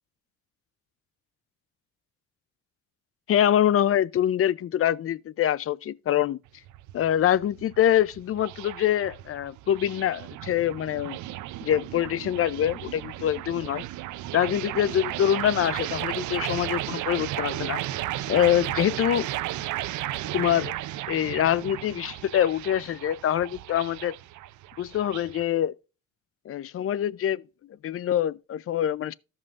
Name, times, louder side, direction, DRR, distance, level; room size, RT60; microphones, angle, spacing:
voice 1, 3.3-6.4 6.9-11.2 11.6-13.8 14.3-17.8 18.3-19.3 20.3-20.7 21.1-24.1 24.8-25.7 26.5-27.4 27.8-29.1, left 10 dB, 50° left, 0.5 m, -25 dB
sound 1, 6.5-25.4, right 15 dB, 75° right, 0.5 m, -34 dB
14.5 x 5.5 x 2.4 m
cardioid pair, 90°, 30 cm